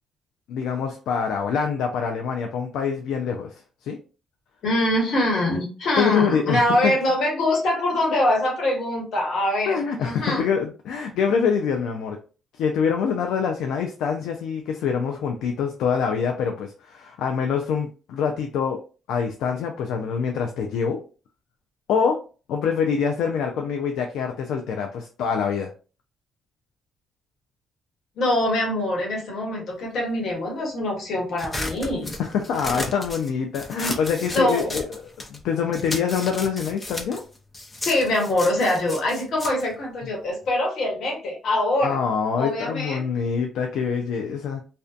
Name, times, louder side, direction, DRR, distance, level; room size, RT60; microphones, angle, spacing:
voice 1, 0.5-4.0 6.0-6.9 9.7-12.2 12.6-18.8 19.1-21.0 21.9-22.2 22.5-25.7 32.2-35.0 35.3-37.2 41.8-44.6, left 6 dB, 85° left, 3 dB, 0.3 m, -25 dB
voice 2, 4.6-10.5 28.2-32.1 34.3-34.8 37.8-42.0 42.4-43.1, left 1 dB, 70° left, -1 dB, 1.1 m, -24 dB
sound 1, 31.4-35.4 35.7-40.5, left 2 dB, 25° left, 0.6 m, -34 dB
2.5 x 2.1 x 2.4 m, 0.36 s
cardioid pair, 90°, 0 cm